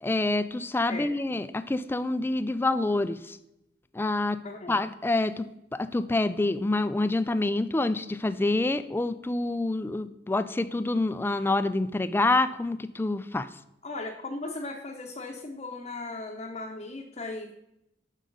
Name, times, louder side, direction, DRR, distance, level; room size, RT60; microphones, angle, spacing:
voice 1, 0.0-3.4 3.9-4.4 4.7-5.5 5.7-13.5, left 2 dB, 15° left, 12 dB, 0.3 m, -27 dB
voice 2, 0.9-1.4 4.4-4.8 13.8-17.5, left 2 dB, 35° left, -1 dB, 0.8 m, -37 dB
7.7 x 6.3 x 4.0 m, 0.85 s
head